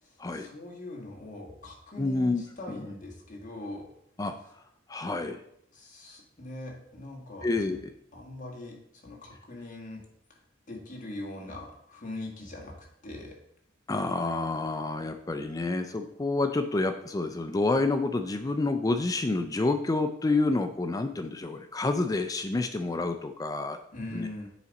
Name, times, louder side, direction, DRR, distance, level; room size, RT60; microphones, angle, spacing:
voice 1, 0.0-3.9 5.7-7.8 8.1-8.8 9.0-10.0 10.7-12.7 13.0-13.3 23.9-24.5, left 2 dB, 40° left, -1 dB, 1.6 m, -41 dB
voice 2, 2.0-2.4 4.2-4.3 4.9-5.4 7.4-7.8 13.9-23.8 24.1-24.3, left 2 dB, 20° left, 8 dB, 0.4 m, -28 dB
7.1 x 4.9 x 4.1 m, 0.73 s
head